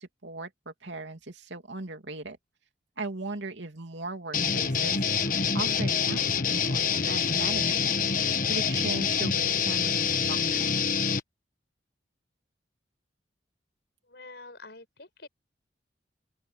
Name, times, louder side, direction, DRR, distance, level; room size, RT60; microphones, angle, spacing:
voice 1, 0.0-2.4 3.0-8.0 8.2-10.8, right 2 dB, 80° right, 2.9 m, -38 dB
sound 1, 4.3-11.2, left 6 dB, 45° left, 1.4 m, -26 dB
voice 2, 14.1-15.3, left 3 dB, 70° left, 5.0 m, -47 dB
open air
head